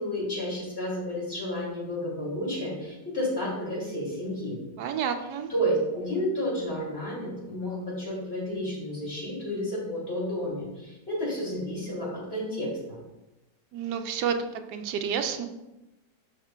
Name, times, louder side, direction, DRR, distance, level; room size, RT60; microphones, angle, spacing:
voice 1, 0.0-4.6 5.5-13.0, equal, 35° left, -5 dB, 3.0 m, -31 dB
voice 2, 4.8-5.5 13.7-14.4 14.7-15.4, right 8 dB, 90° right, 7 dB, 1.3 m, -29 dB
11.5 x 6.5 x 2.2 m, 0.98 s
omnidirectional pair, 1.8 m